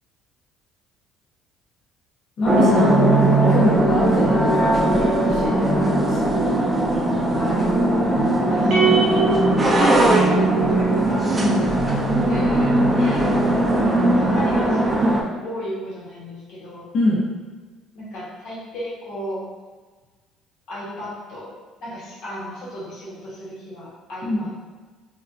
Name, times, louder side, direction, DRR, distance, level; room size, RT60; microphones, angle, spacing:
voice 1, 2.4-3.2 3.5-6.6 11.4-11.7 16.9-17.2 24.2-24.5, left 2 dB, 55° left, -8 dB, 0.8 m, -25 dB
sound 1, 2.4-15.2, right 1 dB, 20° right, 0.5 m, -19 dB
voice 2, 7.3-7.7 8.3-11.8 12.3-16.9 17.9-19.4 20.7-21.5 21.8-24.5, equal, 80° left, -7 dB, 1.2 m, -35 dB
sound 2, 8.7-11.2, right 5 dB, 60° right, 0.7 m, -23 dB
3.6 x 2.2 x 2.7 m, 1.4 s
cardioid pair, 105°, 0 cm